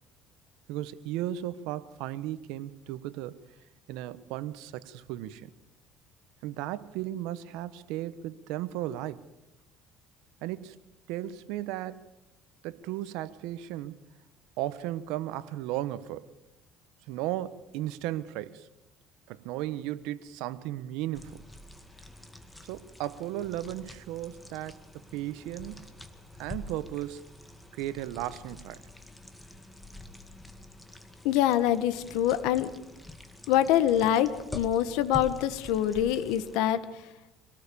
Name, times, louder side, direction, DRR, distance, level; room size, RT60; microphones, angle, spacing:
voice 1, 0.7-3.4 3.9-5.5 6.4-9.2 10.4-10.8 11.1-12.0 12.6-13.9 14.6-16.3 17.1-18.7 19.3-21.4 22.6-24.8 25.1-25.9 26.4-27.3 27.7-28.8, right 14 dB, 80° right, 1.3 m, -35 dB
sound 1, 21.1-36.6, left 1 dB, 5° left, 2.1 m, -46 dB
voice 2, 31.2-32.7 33.5-36.8, left 11 dB, 85° left, 1.6 m, -25 dB
26.0 x 18.5 x 7.1 m
cardioid pair, 120°, 0 cm